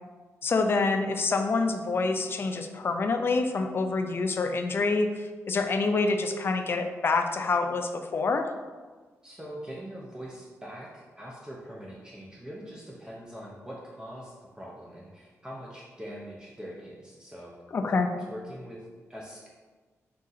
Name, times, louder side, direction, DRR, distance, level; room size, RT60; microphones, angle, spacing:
voice 1, 0.4-8.5 17.7-18.1, left 3 dB, 45° left, 6 dB, 0.4 m, -27 dB
voice 2, 9.2-17.5 17.9-19.5, equal, 15° right, -5 dB, 0.6 m, -43 dB
3.6 x 2.7 x 4.0 m, 1.4 s
wide cardioid pair, 110°, 5 cm